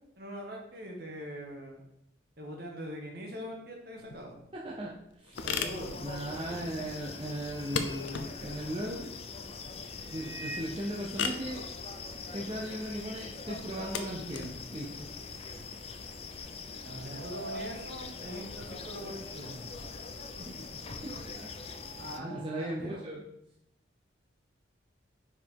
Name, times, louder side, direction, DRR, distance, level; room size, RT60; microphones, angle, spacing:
voice 1, 0.2-1.8 2.4-4.4 5.4-6.1 16.8-19.6 20.4-20.5 22.0-22.3 22.6-23.0, equal, 55° right, 0 dB, 1.6 m, -42 dB
sound 1, 4.0-16.4, left 6 dB, 75° left, 0.7 m, -40 dB
voice 2, 4.5-5.5 6.0-9.1 10.1-11.7 12.3-15.1 20.5-20.6 21.0-21.8 22.2-23.2, right 1 dB, 30° right, -4 dB, 0.7 m, -38 dB
sound 2, 5.3-22.2, left 4 dB, 30° left, 0.5 m, -43 dB
sound 3, 7.1-9.0 10.0-10.9 11.3-11.4 11.6-11.7 12.1-14.3 14.7-14.8 15.6-16.0 16.2-19.5 19.8-22.8, right 2 dB, 75° right, 0.7 m, -48 dB
5.6 x 4.7 x 4.7 m, 0.81 s
head